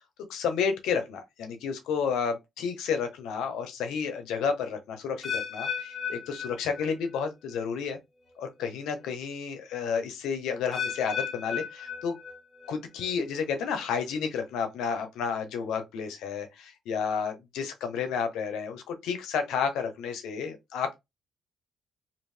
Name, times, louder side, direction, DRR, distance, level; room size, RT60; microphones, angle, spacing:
voice 1, 0.3-8.0 8.4-12.2 12.7-21.0, left 6 dB, 85° left, 1.0 m, -31 dB
sound 1, 5.2-7.2 7.5-7.9 8.6-8.7 10.7-12.7 13.0-13.4 14.1-14.2, left 7 dB, 35° left, 1.3 m, -35 dB
2.8 x 2.7 x 3.3 m
cardioid pair, 90°, 0 cm